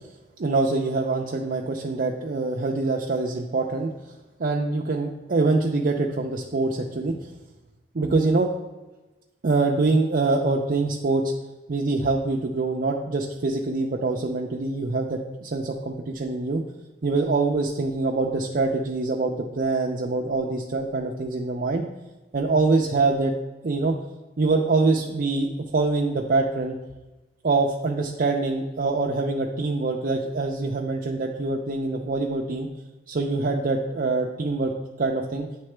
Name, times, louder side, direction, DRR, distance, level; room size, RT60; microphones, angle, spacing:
voice 1, 0.4-3.9 4.4-7.3 7.9-8.5 9.4-11.3 11.7-16.6 17.0-21.8 22.3-23.3 23.6-24.0 24.4-26.7 27.4-32.7 33.1-34.7 35.0-35.5, right 3 dB, 50° right, -1 dB, 0.5 m, -24 dB
9.5 x 3.7 x 3.3 m, 1.1 s
head